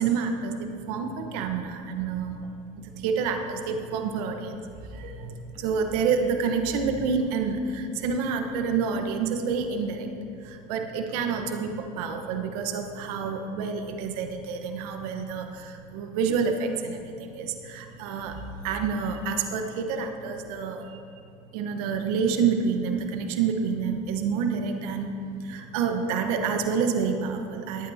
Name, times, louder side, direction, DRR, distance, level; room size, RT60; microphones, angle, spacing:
voice 1, 0.0-2.5 2.8-10.1 10.4-21.0 21.5-25.1 25.4-27.9, right 5 dB, 75° right, 5 dB, 1.1 m, -28 dB
22.0 x 8.9 x 2.8 m, 2.5 s
hypercardioid pair, 80°, 20 cm